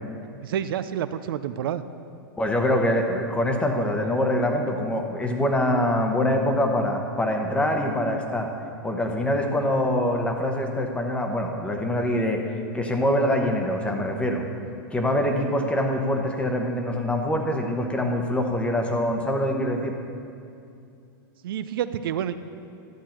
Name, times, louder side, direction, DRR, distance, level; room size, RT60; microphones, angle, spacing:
voice 1, 0.4-1.8 21.4-22.3, right 10 dB, 80° right, 12 dB, 0.4 m, -28 dB
voice 2, 2.4-8.5 8.8-12.4 12.7-14.4 14.9-20.0, left 1 dB, 10° left, 3 dB, 0.9 m, -24 dB
12.0 x 7.5 x 4.4 m, 2.5 s
hypercardioid pair, 130°, 12 cm